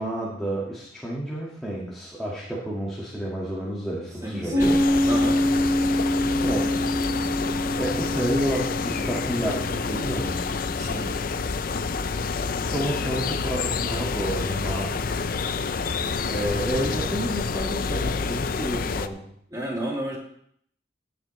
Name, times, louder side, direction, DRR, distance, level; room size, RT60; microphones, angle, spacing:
voice 1, 0.0-4.8 6.4-10.6 12.6-15.3 16.2-19.3, right 1 dB, ahead, -6 dB, 1.8 m, -30 dB
voice 2, 4.2-4.8 5.1-5.4 10.8-11.1 19.5-20.2, right 1 dB, 20° right, -3 dB, 2.5 m, -31 dB
Piano, 4.5-11.7, left 1 dB, 50° right, 2.7 m, -26 dB
sound 1, 4.6-19.1, left 4 dB, 50° left, 0.5 m, -28 dB
17.0 x 7.5 x 3.2 m, 0.68 s
head